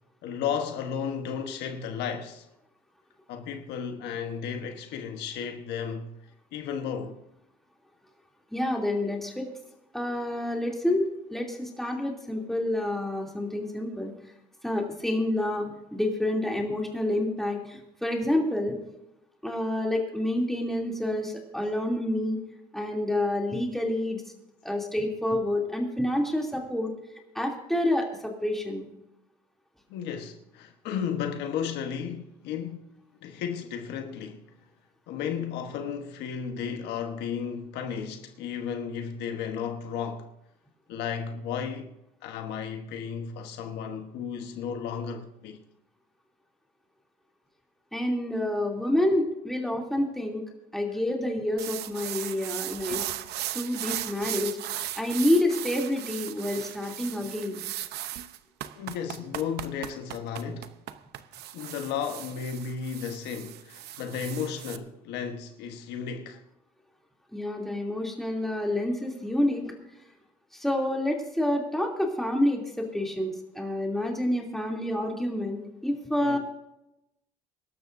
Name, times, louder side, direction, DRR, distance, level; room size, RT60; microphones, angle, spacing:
voice 1, 0.2-2.5 3.3-6.1 6.5-7.2 29.9-32.9 33.2-34.4 35.1-40.3 40.9-41.9 42.2-45.6 54.2-54.4 58.7-60.7 61.5-66.4 76.2-76.4, left 7 dB, 85° left, 1.3 m, -34 dB
voice 2, 8.5-9.5 9.9-14.1 14.6-18.8 19.4-22.4 22.7-24.2 24.6-26.9 27.3-28.8 47.9-50.4 50.7-53.0 53.5-57.6 67.3-69.7 70.5-76.4, left 1 dB, ahead, 2.9 m, -28 dB
sound 1, 51.6-64.8, right 13 dB, 75° right, 0.8 m, -37 dB
24.0 x 12.5 x 2.7 m
cardioid pair, 110°, 17 cm